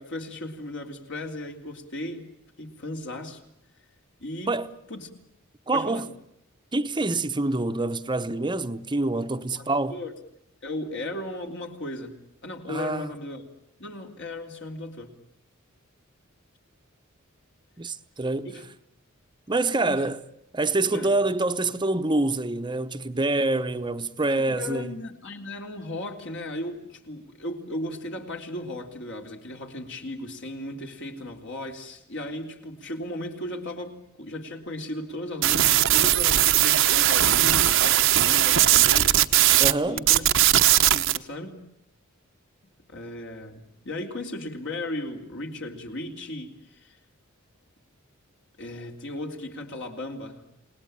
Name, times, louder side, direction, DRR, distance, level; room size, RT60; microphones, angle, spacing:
voice 1, 0.0-2.3 2.6-3.4 4.2-4.6 4.9-5.1 5.7-6.0 9.5-10.1 10.6-13.4 13.8-15.2 18.5-18.6 19.8-20.0 20.9-21.1 24.2-39.2 39.8-40.3 40.7-41.7 42.9-47.0 48.6-50.5, left 1 dB, 60° left, 3.7 m, -36 dB
voice 2, 5.7-6.1 6.7-10.0 12.7-13.1 17.8-18.5 19.5-20.2 20.5-24.9 39.6-40.0, right 2 dB, 20° right, 0.9 m, -26 dB
sound 1, 35.4-39.7 40.0-41.2, right 13 dB, 65° right, 0.9 m, -19 dB
28.5 x 19.5 x 9.0 m
head